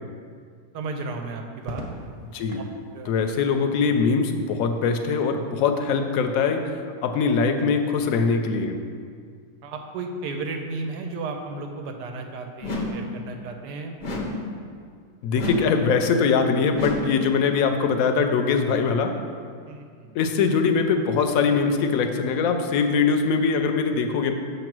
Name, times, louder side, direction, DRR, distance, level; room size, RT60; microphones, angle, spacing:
voice 1, 0.7-1.8 2.9-3.1 9.6-14.0 19.6-20.2, right 3 dB, 85° right, 4 dB, 1.3 m, -34 dB
Crackle, 1.6-2.7 4.3-4.9, equal, 45° right, 0.7 m, -39 dB
voice 2, 3.1-6.7 7.0-8.8 15.2-19.1 20.1-24.3, left 5 dB, 70° left, 6 dB, 0.9 m, -22 dB
sound 1, 12.6-13.2 14.0-14.6 15.3-15.9 16.7-17.3, left 1 dB, 50° left, 0.5 m, -30 dB
7.0 x 3.1 x 5.9 m, 2.2 s
omnidirectional pair, 1.7 m